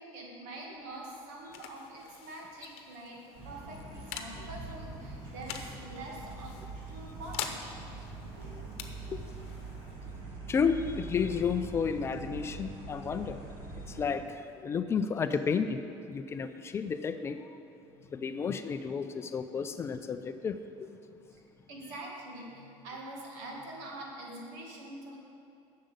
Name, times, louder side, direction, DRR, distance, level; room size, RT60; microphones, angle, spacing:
voice 1, 0.0-7.7 8.5-8.6 17.8-18.4 21.3-25.2, right 1 dB, 90° right, -1 dB, 2.1 m, -45 dB
sound 1, 0.7-12.1, left 8 dB, 75° left, 0.8 m, -46 dB
sound 2, 3.3-14.2, right 3 dB, 55° right, 1.9 m, -43 dB
voice 2, 10.5-13.4 13.8-15.8 16.1-17.4 18.1-20.9, left 6 dB, 25° left, 9 dB, 0.4 m, -32 dB
7.7 x 6.4 x 8.2 m, 2.7 s
cardioid pair, 160°, 11 cm